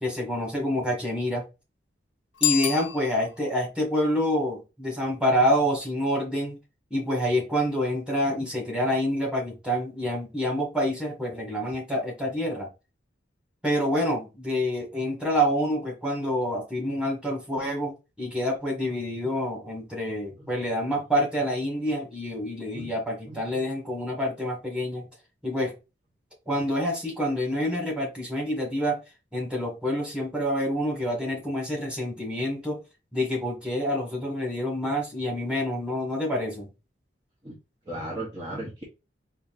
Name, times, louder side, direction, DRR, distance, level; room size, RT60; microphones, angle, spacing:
voice 1, 0.0-1.4 2.4-6.6 6.9-12.7 13.6-25.1 25.4-25.7 26.5-29.0 29.3-32.8 33.1-36.7, equal, 5° right, 1.7 m, -27 dB
Bicycle bell, 2.3-3.6, left 12 dB, 75° left, 0.8 m, -28 dB
voice 2, 37.9-38.8, right 1 dB, 20° right, 1.0 m, -36 dB
5.0 x 2.7 x 2.5 m
head